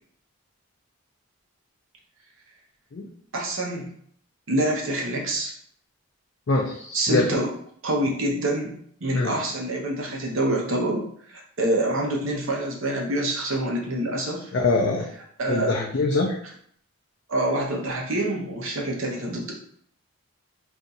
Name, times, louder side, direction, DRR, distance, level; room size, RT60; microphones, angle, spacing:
voice 1, 3.3-3.9 4.5-5.5 6.9-7.5 7.8-8.8 9.0-14.5 15.4-15.7 17.3-19.5, right 1 dB, 70° right, -1 dB, 0.8 m, -26 dB
voice 2, 6.5-7.3 9.1-9.3 14.5-15.1 15.5-16.4, left 3 dB, 50° left, -1 dB, 0.4 m, -23 dB
2.6 x 2.4 x 4.0 m, 0.63 s
head